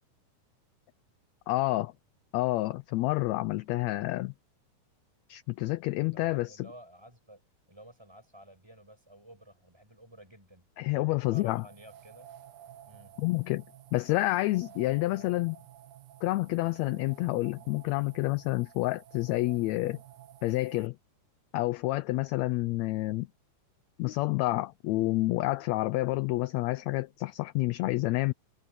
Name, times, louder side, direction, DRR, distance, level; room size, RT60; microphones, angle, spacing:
voice 1, 1.5-1.9 2.3-4.3 5.3-6.7 10.8-11.6 13.2-13.6 13.9-15.6 16.2-20.0 20.4-21.0 21.5-23.3 24.0-28.3, left 19 dB, 80° left, 1.6 m, -29 dB
voice 2, 6.0-7.4 7.7-12.4 12.8-13.1, right 1 dB, 10° right, 6.3 m, -53 dB
sound 1, 11.3-20.9, right 12 dB, 75° right, 2.4 m, -53 dB
omnidirectional pair, 3.6 m